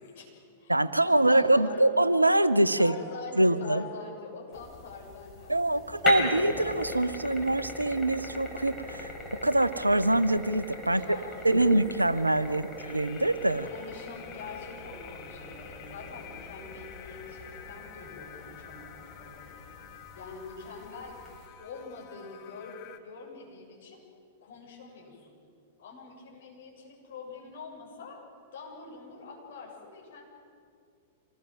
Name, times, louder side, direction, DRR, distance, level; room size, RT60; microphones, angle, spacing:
voice 1, 0.0-0.7 1.0-1.9 2.7-5.9 10.9-11.8 12.4-12.6 13.6-19.6 20.2-21.2 21.6-24.0 24.4-25.4 25.8-28.2 28.5-30.2, left 5 dB, 60° left, -2 dB, 7.7 m, -44 dB
voice 2, 0.7-3.0 3.3-3.8 5.5-9.1 9.4-11.2 11.4-13.7, right 1 dB, 90° right, 15 dB, 0.8 m, -24 dB
sound 1, 4.5-21.5, left 2 dB, 15° left, 5.7 m, -40 dB
sound 2, 12.8-23.0, left 10 dB, 40° left, 1.9 m, -50 dB
26.0 x 19.0 x 7.7 m, 2.3 s
figure-of-eight pair, 100°, 0 cm